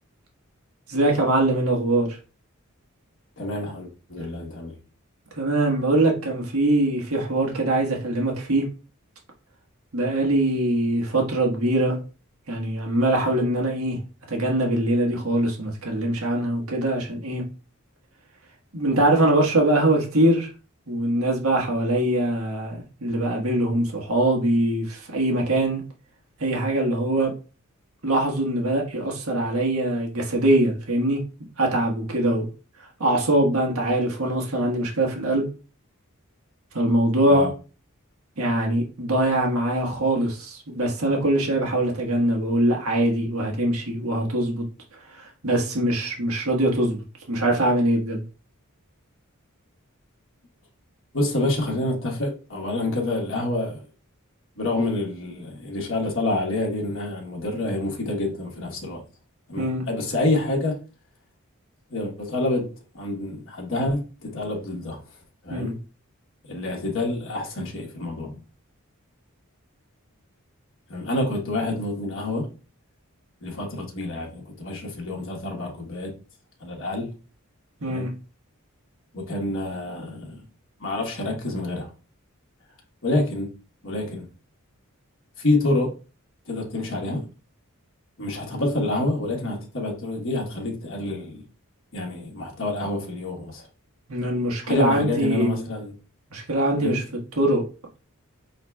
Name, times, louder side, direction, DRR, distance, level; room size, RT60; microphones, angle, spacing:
voice 1, 0.9-2.2 5.4-8.6 9.9-12.0 12.5-14.0 14.3-17.4 18.7-20.5 20.9-25.8 26.4-27.3 28.0-31.2 31.6-32.5 33.0-35.5 36.7-37.5 38.4-44.6 45.1-48.2 59.6-59.8 65.5-65.7 77.8-78.1 94.1-95.6 96.3-97.0 97.4-97.6, right 1 dB, 85° right, 1.5 m, -22 dB
voice 2, 3.4-4.8 37.3-37.5 51.1-53.8 54.6-59.0 59.5-60.8 61.9-62.7 62.9-65.0 65.4-65.8 66.5-68.4 70.9-72.5 73.4-76.1 76.6-77.1 77.8-78.1 79.1-80.4 80.8-81.9 83.0-83.5 83.8-84.3 85.4-85.9 86.5-87.2 88.2-91.4 91.9-93.6 94.6-95.9 96.8-97.0, left 2 dB, 60° left, 1.3 m, -27 dB
5.8 x 3.9 x 2.3 m
head